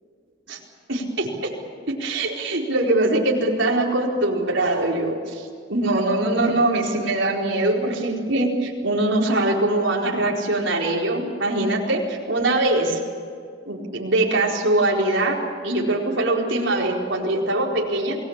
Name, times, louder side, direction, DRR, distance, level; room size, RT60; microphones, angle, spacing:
voice 1, 0.9-1.3 1.9-13.0 13.7-15.3 15.6-18.2, right 2 dB, 65° right, -2 dB, 4.5 m, -22 dB
29.5 x 20.0 x 7.4 m, 2.2 s
head